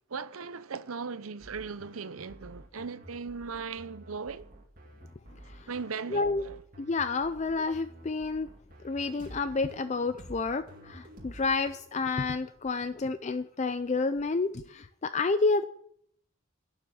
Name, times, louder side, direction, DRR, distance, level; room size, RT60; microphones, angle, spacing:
voice 1, 0.1-4.4 5.7-6.6, right 5 dB, 90° right, 0.7 m, -38 dB
sound 1, 1.4-11.7, right 1 dB, 40° right, 2.4 m, -50 dB
voice 2, 6.1-6.4 6.8-8.5 8.8-15.6, left 3 dB, 35° left, 0.4 m, -29 dB
11.5 x 7.3 x 9.8 m
head